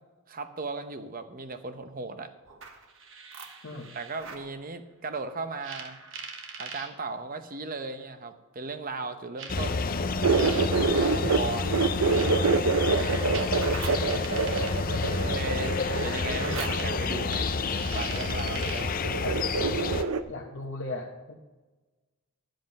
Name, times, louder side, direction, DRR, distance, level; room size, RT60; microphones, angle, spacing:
voice 1, 0.3-2.3 3.9-6.0 6.6-10.2 10.8-13.3 15.2-15.8 16.0-19.0, right 3 dB, 40° right, 9 dB, 0.8 m, -37 dB
sound 1, 2.5-4.5 5.6-6.9 8.0-8.1 9.4-19.0, right 4 dB, 60° right, 1.3 m, -42 dB
sound 2, 9.5-20.0, left 4 dB, 40° left, 0.5 m, -29 dB
sound 3, 10.2-11.4 11.6-17.2 18.2-18.8 19.0-20.2, right 4 dB, 85° right, 0.7 m, -26 dB
voice 2, 20.3-21.3, left 2 dB, 55° left, -2 dB, 1.1 m, -37 dB
12.0 x 7.8 x 5.3 m, 1.2 s
head